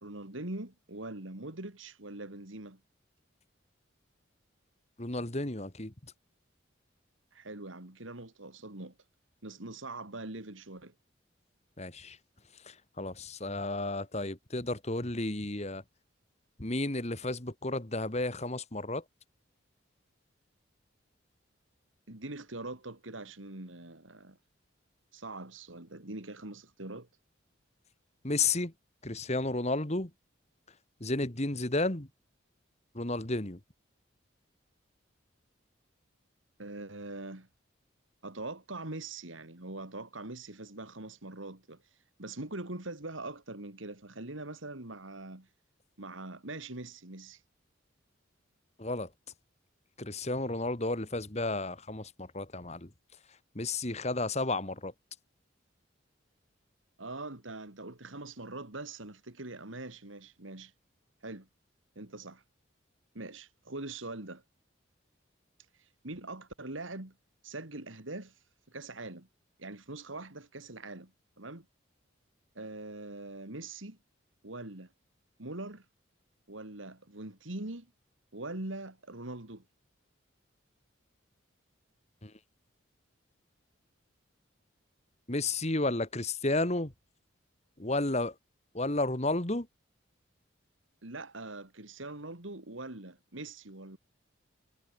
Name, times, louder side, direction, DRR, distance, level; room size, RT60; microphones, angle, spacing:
voice 1, 0.0-2.8 7.3-8.9 9.4-10.9 22.1-24.4 25.1-27.1 36.6-37.5 38.2-45.5 46.0-47.4 57.0-60.7 61.2-61.5 62.0-62.4 63.1-64.4 65.8-67.1 67.4-69.3 69.6-71.1 71.4-71.7 72.5-74.0 74.4-74.9 75.4-75.8 76.5-77.9 78.3-79.6 91.0-94.0, right 2 dB, 80° right, 2.9 m, -43 dB
voice 2, 5.0-5.9 11.8-12.2 12.7-15.8 16.6-19.0 28.2-28.7 29.0-30.1 31.0-32.1 32.9-33.6 48.8-49.1 50.0-52.9 53.5-54.9 82.2-82.3 85.3-86.9 87.8-88.3 88.7-89.7, left 2 dB, 35° left, 2.1 m, -32 dB
head